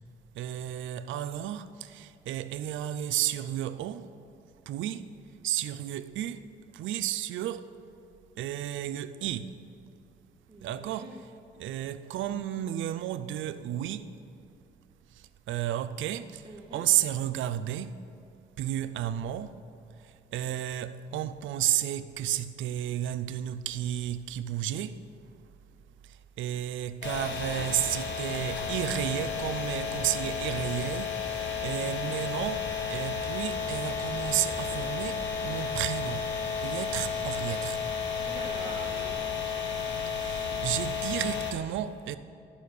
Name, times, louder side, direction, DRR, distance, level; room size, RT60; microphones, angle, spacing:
voice 1, 0.4-4.1 4.7-5.1 5.4-6.5 6.7-7.7 8.4-9.6 10.6-11.2 11.6-14.1 15.1-18.0 18.6-19.6 20.0-25.0 26.0-36.3 36.6-37.8 40.1-42.2, right 12 dB, 75° right, 0.4 m, -32 dB
voice 2, 10.5-11.2 16.4-16.8 38.2-39.2, right 3 dB, 20° right, 0.9 m, -44 dB
sound 1, 27.0-41.5, left 6 dB, 70° left, 1.1 m, -32 dB
11.5 x 5.2 x 6.6 m
cardioid pair, 90°, 20 cm